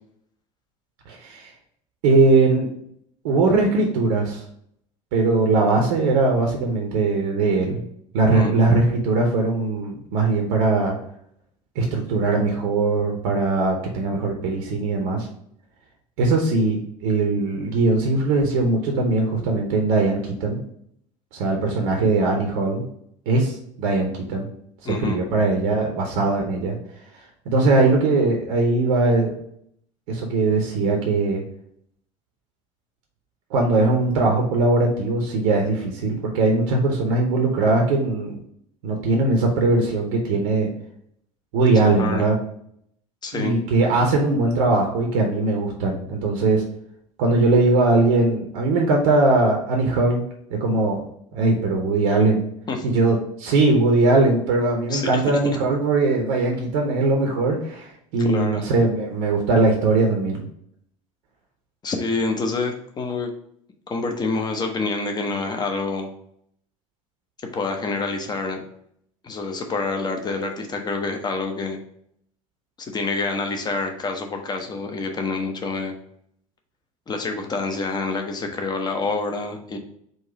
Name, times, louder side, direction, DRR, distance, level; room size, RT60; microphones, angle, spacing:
voice 1, 1.1-1.5 2.0-2.7 3.2-4.4 5.1-7.8 8.1-11.0 11.8-15.3 16.2-20.6 21.3-22.8 23.3-24.4 24.8-26.8 27.5-29.3 30.1-31.4 33.5-38.4 38.8-40.7 41.5-42.4 43.3-46.6 47.2-50.2 50.5-51.0 51.3-52.4 52.8-60.5, right 3 dB, 60° right, 2 dB, 0.7 m, -20 dB
voice 2, 24.8-25.2 42.0-42.3 43.2-43.5 52.7-52.9 54.9-55.4 58.2-58.6 61.8-63.3 63.9-66.1 67.4-68.6 69.2-71.8 72.8-76.0 77.1-79.8, left 3 dB, 25° left, 4 dB, 0.8 m, -27 dB
3.9 x 2.5 x 4.6 m, 0.70 s
figure-of-eight pair, 70°, 18 cm